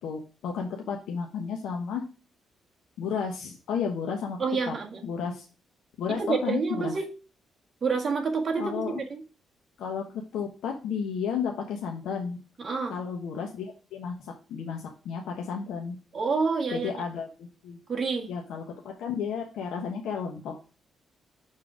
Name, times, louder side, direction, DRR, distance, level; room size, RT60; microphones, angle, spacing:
voice 1, 0.0-2.0 3.0-4.4 4.7-4.8 5.0-5.5 6.0-6.9 8.6-9.0 9.8-10.0 10.3-12.4 12.9-15.9 16.7-17.8 18.3-20.5, left 6 dB, 85° left, 1 dB, 1.0 m, -32 dB
voice 2, 4.4-5.0 6.1-7.1 7.8-9.2 12.6-12.9 16.1-16.9 17.9-18.3, right 4 dB, 40° right, 2 dB, 1.7 m, -28 dB
6.5 x 3.8 x 4.9 m, 0.34 s
cardioid pair, 125°, 0 cm